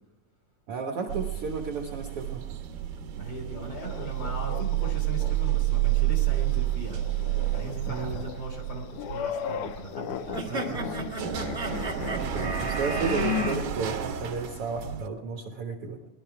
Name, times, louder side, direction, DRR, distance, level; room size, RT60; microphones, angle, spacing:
voice 1, 0.7-2.4 7.9-8.2 10.5-10.9 11.9-16.0, right 4 dB, 55° right, 1 dB, 1.8 m, -33 dB
sound 1, 1.1-15.1, right 13 dB, 90° right, 2.9 m, -30 dB
voice 2, 3.2-7.0 7.5-11.2, right 2 dB, 35° left, 0 dB, 3.6 m, -38 dB
sound 2, 3.7-5.3 5.8-5.9 6.9-13.6, left 9 dB, 80° left, 2.3 m, -36 dB
sound 3, 10.3-13.6, right 3 dB, 25° right, 1.3 m, -33 dB
20.0 x 12.0 x 4.7 m, 0.96 s
omnidirectional pair, 3.8 m